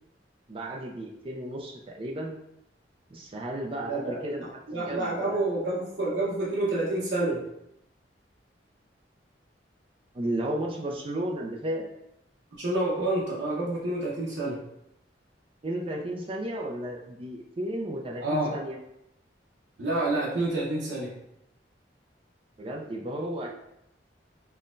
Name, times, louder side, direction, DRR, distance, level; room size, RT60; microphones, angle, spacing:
voice 1, 0.5-2.4 3.1-5.4 10.1-11.9 15.6-18.8 22.6-23.5, right 1 dB, 30° right, 0 dB, 0.4 m, -33 dB
voice 2, 3.9-4.2 4.7-7.4 12.6-14.6 18.2-18.5 19.8-21.1, right 2 dB, 85° right, -6 dB, 0.8 m, -28 dB
5.6 x 2.1 x 2.5 m, 0.81 s
head